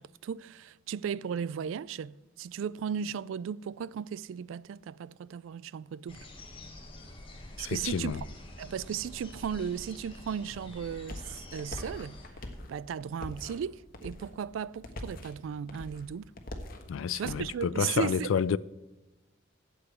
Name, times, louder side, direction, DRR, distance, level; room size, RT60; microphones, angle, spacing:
voice 1, 0.0-6.3 7.6-12.2 12.7-16.3 17.1-18.6, right 7 dB, 80° right, 0.3 m, -36 dB
sound 1, 6.1-12.3, left 1 dB, 25° left, 1.6 m, -47 dB
voice 2, 7.6-8.2 16.9-18.6, left 7 dB, 80° left, 0.3 m, -29 dB
sound 2, 10.2-17.6, left 1 dB, 45° left, 1.3 m, -44 dB
8.7 x 8.1 x 8.3 m
head